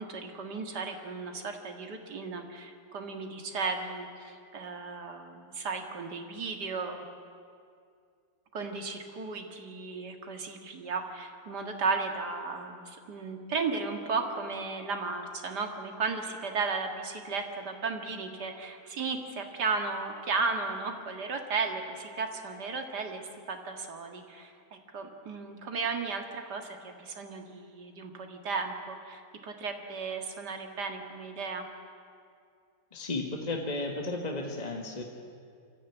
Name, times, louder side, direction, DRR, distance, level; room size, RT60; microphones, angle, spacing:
voice 1, 0.0-7.0 8.5-23.2 23.5-31.7, right 4 dB, 80° right, 4 dB, 2.4 m, -35 dB
voice 2, 32.9-35.0, left 2 dB, 25° left, 2 dB, 1.5 m, -34 dB
24.0 x 14.5 x 9.3 m, 2.4 s
omnidirectional pair, 1.8 m